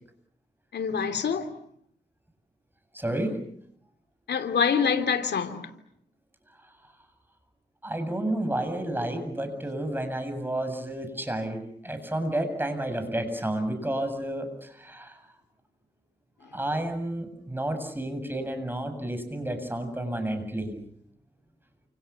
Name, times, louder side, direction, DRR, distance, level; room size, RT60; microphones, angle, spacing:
voice 1, 0.7-1.5 4.3-5.7, left 6 dB, 80° left, 3.1 m, -25 dB
voice 2, 2.9-3.4 7.8-15.2 16.5-20.8, right 1 dB, 10° right, 7.8 m, -31 dB
29.0 x 28.0 x 7.2 m
cardioid pair, 90°, 18 cm